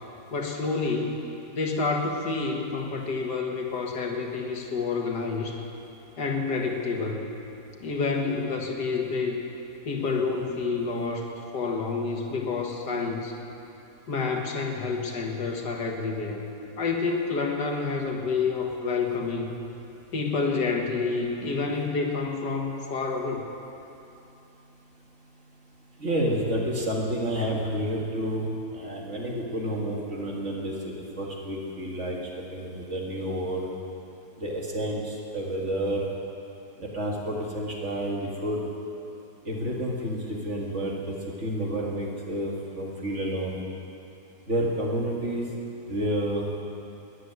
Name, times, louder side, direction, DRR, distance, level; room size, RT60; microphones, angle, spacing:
voice 1, 0.3-1.2 1.5-5.6 6.2-7.2 7.8-9.4 9.9-13.3 14.1-16.5 16.8-19.6 20.1-23.4, left 4 dB, 75° left, 2 dB, 2.1 m, -28 dB
voice 2, 26.0-28.5 28.7-32.2 32.5-33.7 34.4-36.0 36.8-38.6 39.5-43.6 44.5-45.4 45.9-46.5, right 1 dB, 45° right, -2 dB, 2.3 m, -30 dB
13.0 x 10.5 x 9.5 m, 2.8 s
omnidirectional pair, 1.8 m